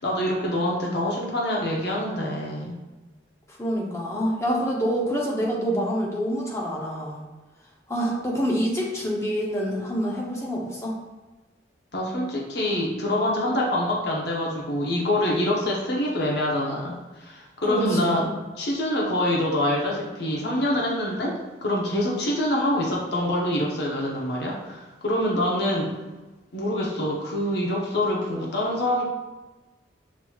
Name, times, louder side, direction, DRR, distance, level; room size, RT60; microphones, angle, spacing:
voice 1, 0.0-2.8 11.9-18.2 18.6-26.0 26.5-29.0, left 1 dB, 60° left, -2 dB, 0.8 m, -25 dB
voice 2, 3.5-7.2 7.9-11.0 17.7-18.2, equal, 15° left, -3 dB, 0.7 m, -26 dB
6.1 x 2.9 x 2.3 m, 1.2 s
head